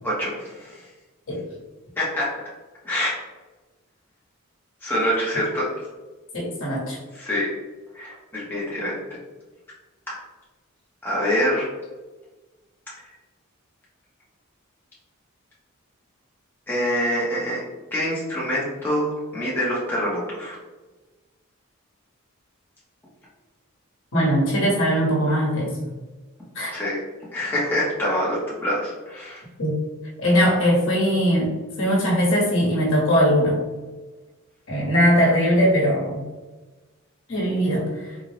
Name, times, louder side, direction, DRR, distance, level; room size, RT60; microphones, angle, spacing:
voice 1, 0.0-0.8 2.0-2.3 2.8-3.2 4.8-5.7 7.1-7.5 7.9-9.0 11.0-11.7 16.7-17.6 17.9-20.6 26.7-27.0 27.3-29.4, equal, 10° left, -7 dB, 0.6 m, -25 dB
voice 2, 6.3-7.0 24.1-25.7 26.5-26.7 29.6-29.8 30.2-33.6 34.7-36.3 37.3-38.2, equal, 60° left, -4 dB, 1.0 m, -20 dB
3.7 x 2.1 x 3.1 m, 1.2 s
head